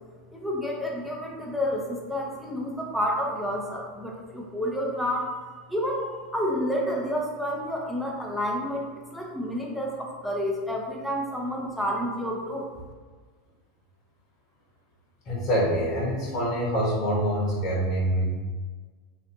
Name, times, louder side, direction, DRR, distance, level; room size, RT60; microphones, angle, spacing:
voice 1, 0.3-5.3 5.7-6.1 6.3-12.7, equal, ahead, -2 dB, 0.7 m, -29 dB
voice 2, 15.3-18.4, equal, 45° left, -5 dB, 1.1 m, -25 dB
3.3 x 2.7 x 2.5 m, 1.5 s
hypercardioid pair, 90°, 0 cm